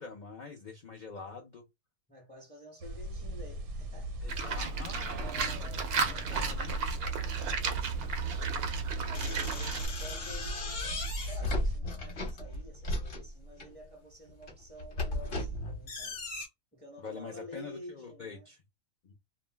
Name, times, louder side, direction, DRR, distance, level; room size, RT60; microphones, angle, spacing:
voice 1, 0.0-1.7 4.2-6.8 7.2-8.4 17.0-18.6 19.0-19.1, left 4 dB, 70° left, 0.4 m, -46 dB
voice 2, 2.1-4.7 5.0-6.3 7.2-7.8 8.9-16.2 16.7-18.5, equal, 10° left, 0.5 m, -50 dB
sound 1, 2.8-11.8, right 2 dB, 80° right, 1.1 m, -37 dB
Livestock farm animals working animals, 4.3-9.9, right 5 dB, 65° right, 0.6 m, -35 dB
sound 2, 9.1-13.7 14.3-16.5, left 1 dB, 50° left, 0.9 m, -36 dB
2.5 x 2.0 x 3.2 m
omnidirectional pair, 1.5 m